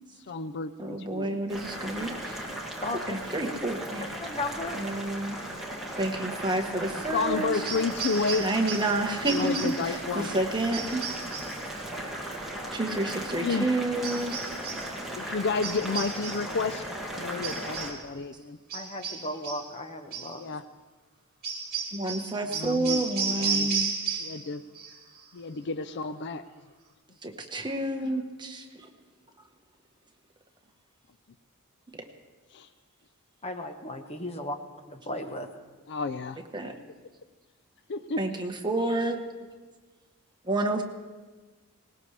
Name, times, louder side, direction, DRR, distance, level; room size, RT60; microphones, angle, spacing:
voice 1, 0.3-1.4 7.1-8.5 9.2-10.3 13.3-13.7 15.2-18.6 20.3-20.6 22.5-23.7 24.2-24.6 25.3-26.4 32.5-32.7 35.9-36.4 37.9-38.4, left 4 dB, 50° left, 12 dB, 0.5 m, -31 dB
voice 2, 0.8-2.4 2.9-4.1 4.7-5.4 6.0-7.6 8.4-11.1 12.7-14.3 21.9-24.2 27.2-28.9 36.5-36.7 38.2-39.2 40.4-40.8, right 2 dB, 20° right, 3 dB, 1.3 m, -29 dB
Boiling, 1.5-17.9, right 1 dB, ahead, 2.2 m, -37 dB
voice 3, 2.8-3.2 4.0-4.8 9.4-9.5 18.7-20.4 33.4-34.6 34.9-35.5, left 1 dB, 30° left, 6 dB, 1.1 m, -35 dB
sound 1, 7.6-9.0 9.2-9.9 10.7-11.6 14.0-14.9 15.6-16.5 17.4-18.0 18.7-19.7 20.1-20.4 21.4-24.5 24.7-25.2, right 6 dB, 45° right, 2.4 m, -34 dB
20.0 x 19.0 x 3.3 m, 1.3 s
head